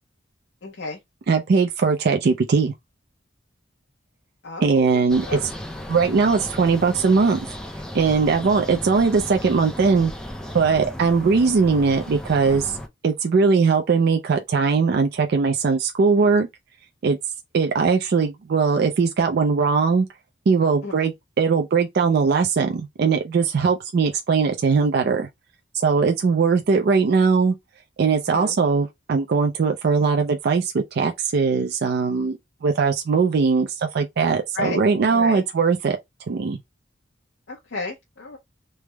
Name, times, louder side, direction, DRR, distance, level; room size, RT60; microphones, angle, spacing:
voice 1, 0.6-1.0 4.4-5.0 5.3-5.4 20.8-21.0 28.3-28.6 34.5-35.4 37.5-38.4, left 3 dB, 65° left, 0.8 m, -32 dB
voice 2, 1.3-2.7 4.6-5.2 5.9-7.4 7.9-10.1 10.5-12.8 13.0-16.5 17.0-17.2 17.5-20.1 20.5-25.3 25.7-27.6 28.0-36.0 36.3-36.6, right 5 dB, 55° right, 0.4 m, -20 dB
sound 1, 5.1-12.9, left 1 dB, 5° left, 0.4 m, -35 dB
3.3 x 2.0 x 3.3 m
head